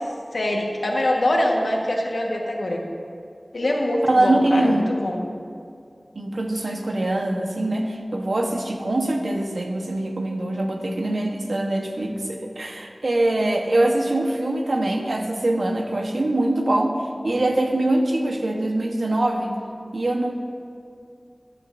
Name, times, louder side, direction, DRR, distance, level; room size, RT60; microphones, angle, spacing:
voice 1, 0.3-2.8 3.5-5.2, left 1 dB, 85° left, 0 dB, 1.4 m, -23 dB
voice 2, 4.1-4.9 6.1-17.0 17.2-19.5 19.9-20.3, right 1 dB, 80° right, 3 dB, 1.0 m, -23 dB
15.5 x 11.0 x 2.6 m, 2.4 s
wide cardioid pair, 50°, 0 cm